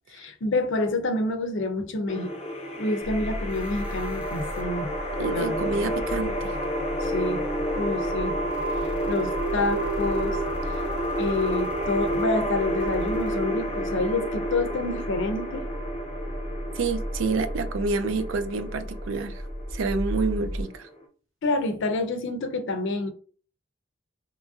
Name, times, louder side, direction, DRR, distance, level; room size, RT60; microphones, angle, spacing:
voice 1, 0.1-2.3 2.8-4.9 5.3-5.9 7.0-7.4 7.7-8.4 9.1-10.4 11.2-15.7 21.4-23.1, left 2 dB, 65° left, 0.5 m, -28 dB
sound 1, 2.1-21.0, equal, 30° left, 0.7 m, -30 dB
sound 2, 3.0-20.6, equal, 5° right, 0.5 m, -36 dB
voice 2, 5.2-6.5 16.8-19.4 19.7-20.9, right 4 dB, 70° right, 0.4 m, -28 dB
3.0 x 2.6 x 2.3 m
head